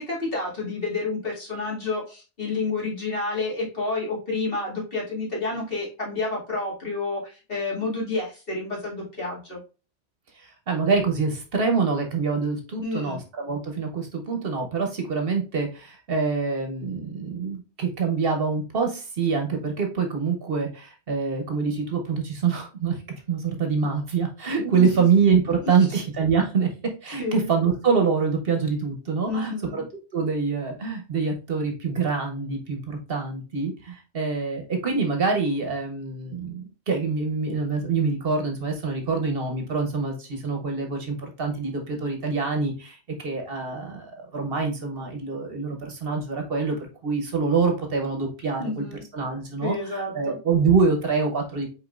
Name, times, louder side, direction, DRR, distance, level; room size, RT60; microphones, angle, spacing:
voice 1, 0.1-9.6 12.8-13.2 24.7-25.0 25.6-25.7 27.2-27.5 29.3-29.8 48.6-49.0 49.6-50.4, left 3 dB, 55° left, -4 dB, 2.4 m, -29 dB
voice 2, 10.4-23.0 23.3-26.7 27.0-29.8 30.1-48.8 49.1-51.7, right 5 dB, 55° right, 4 dB, 1.1 m, -25 dB
5.1 x 4.2 x 2.4 m, 0.31 s
omnidirectional pair, 1.2 m